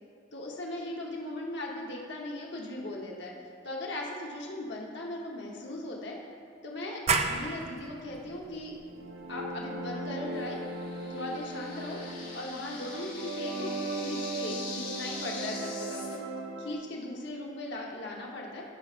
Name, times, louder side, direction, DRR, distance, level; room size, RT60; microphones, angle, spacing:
voice 1, 0.3-3.3 3.6-6.2 6.6-7.0 7.2-8.7 9.3-10.6 11.1-12.0 12.3-16.2 16.6-18.6, left 1 dB, 60° left, -1 dB, 1.1 m, -38 dB
sound 1, 7.1-12.5, right 4 dB, 35° right, 0.4 m, -35 dB
sound 2, 8.8-16.7, right 2 dB, 85° right, 1.0 m, -38 dB
sound 3, 10.3-16.2, left 4 dB, 45° left, 1.6 m, -43 dB
15.0 x 5.7 x 2.5 m, 2.3 s
head